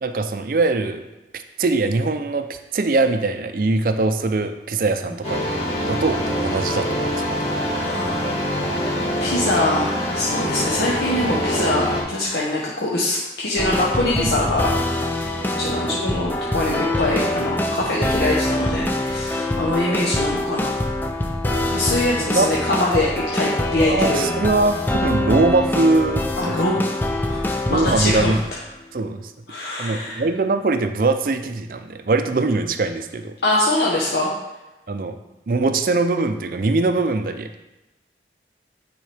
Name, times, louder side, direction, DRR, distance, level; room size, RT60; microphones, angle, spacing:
voice 1, 0.0-1.0 1.6-7.5 19.8-20.1 22.2-22.5 23.9-26.6 27.7-28.4 28.9-29.3 29.8-33.3 34.9-35.2 35.5-37.5, right 3 dB, 50° right, 8 dB, 0.4 m, -22 dB
sound 1, 5.2-12.0, equal, 35° left, 1.6 m, -24 dB
voice 2, 7.5-15.0 15.4-20.9 21.7-24.3 26.4-27.4 27.7-28.3 29.5-30.2 33.4-34.3, left 1 dB, 70° left, -4 dB, 0.9 m, -23 dB
sound 2, 13.6-28.5, left 1 dB, 10° left, 0.5 m, -24 dB
9.2 x 4.7 x 3.4 m, 1.0 s
head